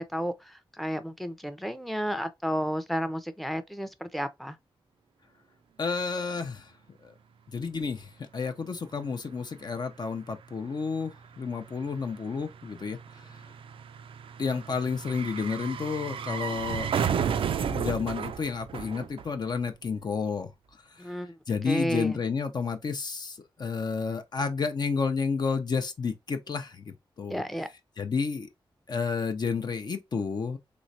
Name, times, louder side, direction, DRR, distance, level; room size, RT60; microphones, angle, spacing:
voice 1, 0.0-4.6 21.0-21.3 21.6-22.2 27.3-27.7, equal, ahead, 0.5 m, -32 dB
voice 2, 5.8-6.7 7.0-7.1 7.5-13.4 14.4-16.9 17.7-20.5 20.9-21.2 21.5-27.4 28.0-28.5 28.9-30.6, left 5 dB, 50° left, 0.5 m, -31 dB
sound 1, 9.0-9.1 9.3-19.7 19.9-20.0, right 7 dB, 80° right, 0.4 m, -33 dB
3.2 x 3.1 x 2.6 m
wide cardioid pair, 85°, 9 cm